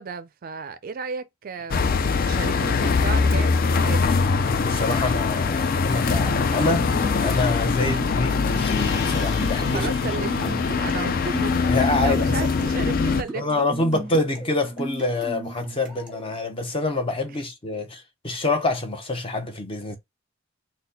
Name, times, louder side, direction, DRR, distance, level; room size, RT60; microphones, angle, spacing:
voice 1, 0.0-4.1 7.8-8.0 9.7-13.7 17.7-17.8, right 5 dB, 45° right, 0.4 m, -34 dB
sound 1, 1.7-13.2, left 4 dB, 45° left, 0.4 m, -22 dB
voice 2, 4.5-6.9 7.2-10.6 11.7-12.5 13.3-20.0, left 2 dB, 25° left, 0.7 m, -26 dB
sound 2, 6.1-16.3, right 2 dB, 5° right, 1.4 m, -37 dB
Gong, 8.5-13.5, left 5 dB, 60° left, 0.9 m, -40 dB
4.0 x 2.2 x 3.9 m
head